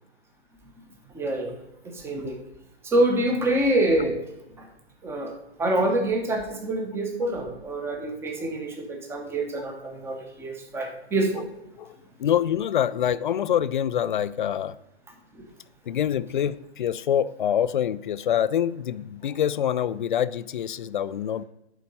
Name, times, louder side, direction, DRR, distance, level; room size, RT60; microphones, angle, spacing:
voice 1, 1.1-1.5 1.8-2.4 2.8-4.2 4.6-4.7 5.0-5.3 5.6-11.5 15.4-15.5, right 1 dB, 5° right, 1.1 m, -26 dB
voice 2, 11.8-14.8 15.9-21.4, left 9 dB, 50° left, 0.4 m, -25 dB
11.0 x 4.5 x 5.4 m
hypercardioid pair, 140°, 33 cm